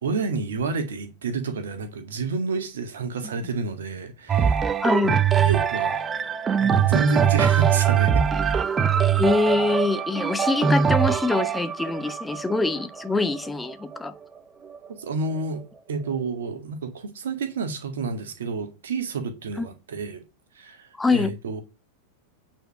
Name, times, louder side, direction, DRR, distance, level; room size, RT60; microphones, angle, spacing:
voice 1, 0.0-4.7 5.0-6.0 6.5-8.3 14.9-20.2 20.6-21.6, right 4 dB, 65° right, 1.9 m, -30 dB
sound 1, 4.3-14.1 14.7-14.8, right 7 dB, 20° right, 0.7 m, -22 dB
voice 2, 4.8-5.2 9.2-14.1 19.6-19.7 20.9-21.3, left 3 dB, 10° left, 0.9 m, -24 dB
9.0 x 4.5 x 6.5 m
figure-of-eight pair, 90°, 0 cm